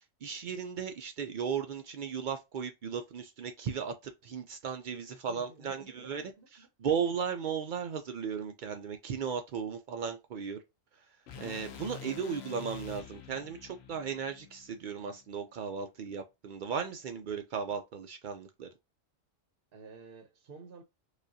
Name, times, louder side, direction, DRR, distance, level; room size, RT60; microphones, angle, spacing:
voice 1, 0.2-6.2 6.5-10.6 11.4-18.7, right 6 dB, 80° right, 0.4 m, -36 dB
voice 2, 4.9-6.7 11.8-12.3 19.7-20.8, right 4 dB, 55° right, 0.7 m, -52 dB
sound 1, 11.3-15.4, left 8 dB, 60° left, 0.8 m, -48 dB
4.9 x 2.3 x 2.6 m
omnidirectional pair, 1.4 m